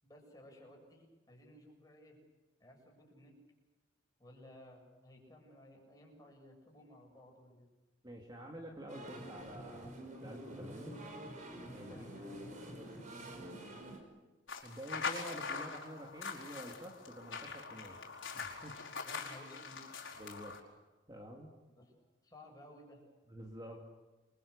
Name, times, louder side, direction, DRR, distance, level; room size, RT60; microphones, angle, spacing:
voice 1, 0.0-2.2 2.6-3.3 4.2-7.7 11.9-13.8 19.0-19.8 21.8-21.9 22.2-23.0, left 1 dB, 20° left, 0 dB, 7.4 m, -57 dB
voice 2, 8.0-11.0 11.7-12.0 14.6-18.0 18.3-18.8 20.2-20.6 21.1-21.5 23.3-23.9, equal, 20° right, 0 dB, 2.6 m, -48 dB
sound 1, 8.9-14.0, right 1 dB, 40° right, 5.9 m, -47 dB
sound 2, 14.5-20.6, left 5 dB, 75° left, 4.8 m, -43 dB
29.0 x 23.5 x 6.7 m, 1.2 s
head